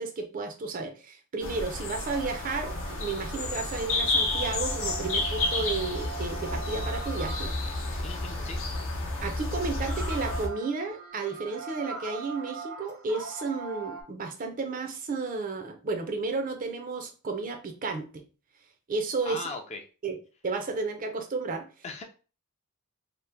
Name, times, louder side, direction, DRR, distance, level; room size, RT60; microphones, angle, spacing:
voice 1, 0.0-7.5 9.2-18.2 18.9-19.4 20.0-20.2 20.4-21.6, right 4 dB, 40° right, 5 dB, 0.5 m, -32 dB
sound 1, 1.4-10.5, left 2 dB, 70° left, 0.7 m, -31 dB
sound 2, 2.1-8.0 9.8-14.0, right 4 dB, 80° right, 0.9 m, -41 dB
voice 2, 8.0-8.6 19.3-19.8 21.8-22.0, left 3 dB, 30° left, 4 dB, 0.4 m, -38 dB
2.9 x 2.1 x 3.3 m, 0.35 s
head